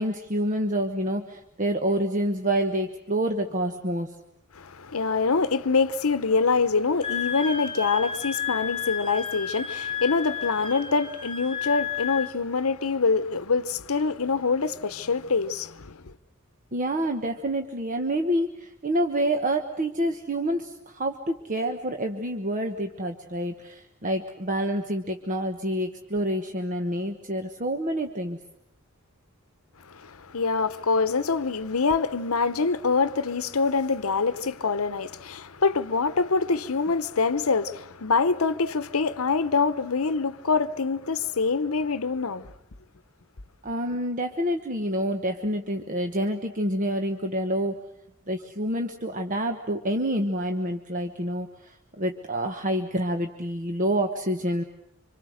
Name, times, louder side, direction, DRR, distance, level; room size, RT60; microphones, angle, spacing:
voice 1, 0.0-4.1 16.7-28.4 43.6-47.8 48.3-54.6, right 1 dB, 35° right, 1.3 m, -28 dB
voice 2, 4.6-16.1 29.9-42.5, left 4 dB, 85° left, 0.9 m, -25 dB
Wind instrument woodwind instrument, 7.0-12.3, left 7 dB, 25° left, 1.6 m, -32 dB
27.0 x 26.0 x 6.5 m
head